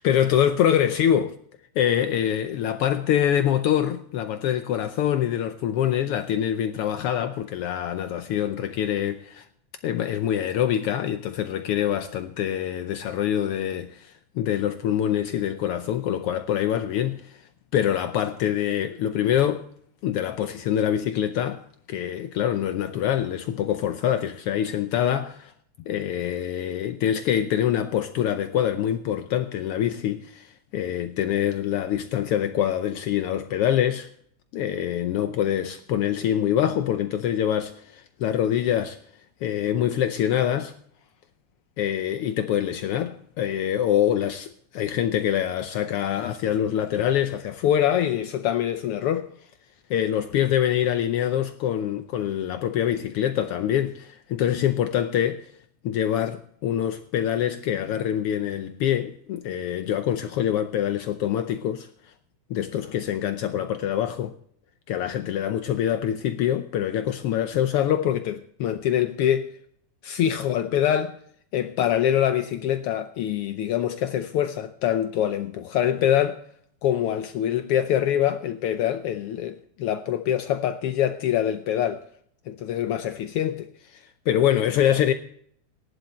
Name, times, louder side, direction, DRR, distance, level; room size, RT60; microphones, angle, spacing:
voice 1, 0.0-1.3 1.8-9.4 9.8-17.4 17.7-19.6 20.0-21.6 21.9-25.5 25.9-34.1 34.5-39.0 39.4-40.7 41.8-49.3 49.9-55.5 55.8-62.1 62.5-64.3 64.9-69.5 70.0-71.2 71.5-76.4 76.8-82.0 82.5-85.1, left 10 dB, 80° left, 1.3 m, -25 dB
17.5 x 11.0 x 4.3 m
omnidirectional pair, 3.4 m